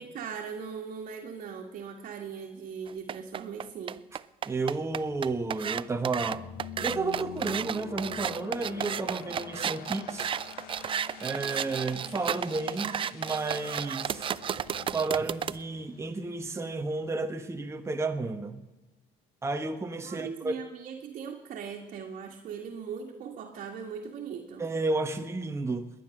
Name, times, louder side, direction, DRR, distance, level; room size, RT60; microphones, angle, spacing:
voice 1, 0.0-4.0 20.0-24.7, right 6 dB, 60° right, 0 dB, 1.8 m, -39 dB
sound 1, 2.9-15.6, right 8 dB, 35° right, 0.4 m, -33 dB
voice 2, 4.5-6.4 6.8-10.3 11.2-14.3 14.9-18.6 19.4-20.6 24.6-25.9, right 3 dB, 20° right, 6 dB, 1.1 m, -32 dB
sound 2, 4.9-17.5, left 9 dB, 80° left, 1.2 m, -46 dB
21.5 x 9.4 x 6.5 m, 1.1 s
cardioid pair, 90°, 15 cm